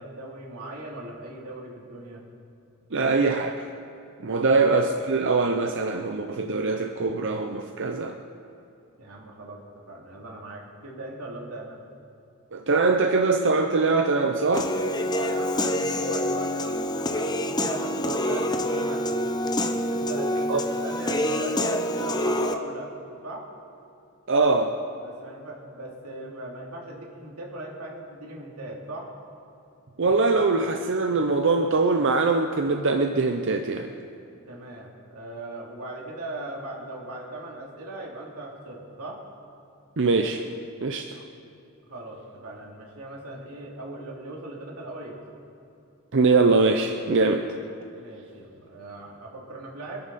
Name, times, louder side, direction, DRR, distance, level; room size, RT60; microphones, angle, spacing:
voice 1, 0.0-2.2 4.4-4.6 9.0-11.8 15.1-19.2 19.9-21.6 22.0-22.9 23.2-23.5 25.0-29.1 34.5-39.2 41.9-45.2 48.0-50.0, right 2 dB, 90° right, -2 dB, 3.1 m, -39 dB
voice 2, 2.9-3.6 4.2-8.2 12.5-14.7 20.5-20.6 24.3-24.7 30.0-33.9 40.0-40.4 40.8-41.1 46.1-47.5, right 3 dB, 55° right, 4 dB, 0.7 m, -22 dB
Human voice / Piano, 14.5-22.5, left 1 dB, 20° left, 0.8 m, -26 dB
24.5 x 11.0 x 4.2 m, 2.7 s
head